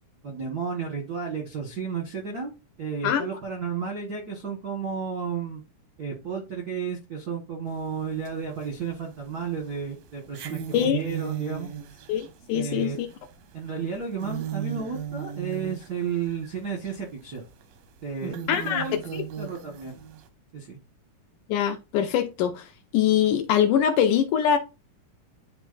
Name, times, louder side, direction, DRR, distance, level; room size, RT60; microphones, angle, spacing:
voice 1, 0.2-2.5 2.8-5.6 6.0-11.7 12.5-13.0 13.5-17.4 18.0-19.0 19.4-20.0 20.5-20.8, right 6 dB, 55° right, 1.0 m, -32 dB
sound 1, 7.7-7.8 8.3-9.0 9.3-9.4 10.3-16.6 16.9-17.0 17.6-17.7 18.2-20.2, right 9 dB, 90° right, 2.6 m, -36 dB
voice 2, 12.1-13.1 18.5-18.8 21.5-22.7 22.9-24.6, left 9 dB, 80° left, 2.0 m, -23 dB
10.5 x 3.6 x 2.5 m
omnidirectional pair, 3.9 m